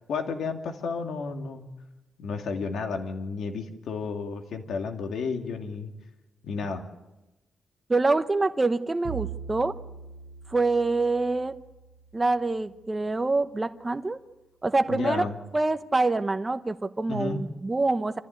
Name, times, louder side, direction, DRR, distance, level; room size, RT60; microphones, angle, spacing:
voice 1, 0.1-1.7 2.2-5.9 6.4-6.8 14.9-15.4 17.1-17.4, left 4 dB, 80° left, 4 dB, 2.7 m, -32 dB
voice 2, 7.9-9.7 10.5-11.5 12.1-14.2 14.6-15.2 15.5-18.2, right 3 dB, 15° right, 9 dB, 0.9 m, -25 dB
Bowed string instrument, 9.0-13.2, right 8 dB, 85° right, 1.0 m, -42 dB
26.5 x 14.5 x 9.6 m, 1.0 s
wide cardioid pair, 175°, 0 cm